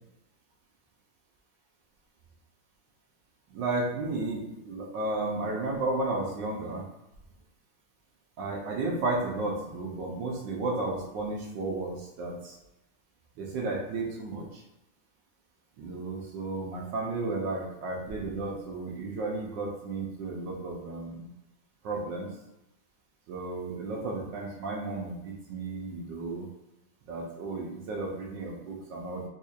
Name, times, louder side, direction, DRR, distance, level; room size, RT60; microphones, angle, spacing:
voice 1, 3.5-6.8 8.4-12.5 13.4-14.4 15.8-21.3 21.8-22.3 23.3-26.4 27.1-29.3, right 2 dB, 75° right, -2 dB, 1.4 m, -33 dB
4.2 x 2.8 x 2.4 m, 0.92 s
omnidirectional pair, 2.1 m